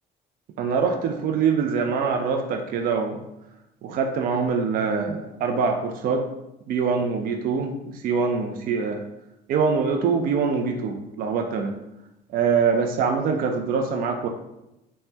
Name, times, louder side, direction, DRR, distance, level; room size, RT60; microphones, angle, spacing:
voice 1, 0.6-3.2 3.8-6.3 6.7-9.0 9.5-11.8 12.3-14.3, right 5 dB, 60° right, 4 dB, 0.4 m, -24 dB
3.3 x 2.1 x 2.7 m, 0.91 s
cardioid pair, 110°, 17 cm